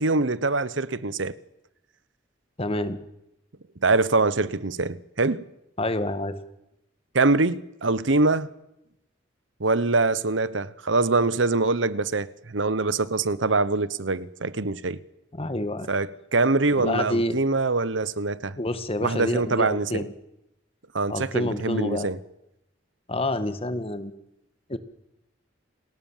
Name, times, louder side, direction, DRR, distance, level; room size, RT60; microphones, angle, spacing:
voice 1, 0.0-1.3 3.8-5.4 7.1-8.5 9.6-15.0 15.9-18.6 19.0-20.1 20.9-22.2, right 3 dB, 80° right, 1.1 m, -24 dB
voice 2, 2.6-3.0 5.8-6.4 15.3-15.9 16.8-17.4 18.6-20.1 21.1-22.1 23.1-24.1 24.7-24.8, left 1 dB, 30° left, 1.8 m, -28 dB
29.0 x 19.5 x 7.5 m
head